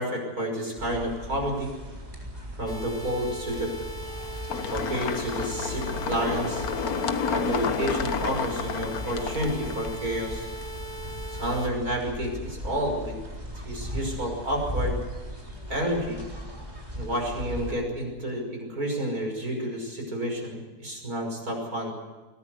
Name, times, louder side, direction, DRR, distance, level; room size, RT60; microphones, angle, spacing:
voice 1, 0.0-1.7 2.6-3.7 4.7-6.6 7.3-10.4 11.4-13.1 13.6-15.0 15.7-16.2 16.9-21.9, equal, 60° right, 1 dB, 6.3 m, -30 dB
sound 1, 0.8-17.8, equal, 25° right, 4.2 m, -38 dB
sound 2, 2.7-11.7, right 1 dB, 30° left, 2.6 m, -40 dB
sound 3, 4.5-10.0, left 6 dB, 65° left, 1.6 m, -30 dB
23.0 x 18.0 x 8.0 m, 1.3 s
omnidirectional pair, 1.8 m